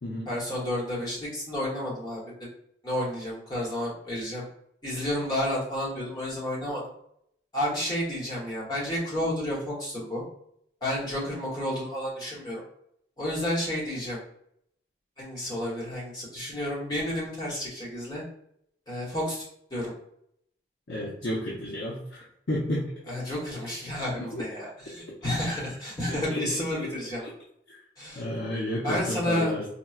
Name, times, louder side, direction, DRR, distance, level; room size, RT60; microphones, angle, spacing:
voice 1, 0.3-2.5 2.8-4.4 4.8-6.8 7.5-10.2 10.8-12.6 13.2-14.2 15.2-18.2 18.9-19.4 19.7-19.9 23.1-27.3 28.0-28.2 28.8-29.5, left 1 dB, 25° left, -5 dB, 1.1 m, -31 dB
voice 2, 20.9-22.9 24.3-24.4 26.1-26.6 27.7-27.8 28.1-29.7, left 1 dB, 75° left, -5 dB, 0.7 m, -32 dB
4.3 x 2.2 x 2.4 m, 0.72 s
head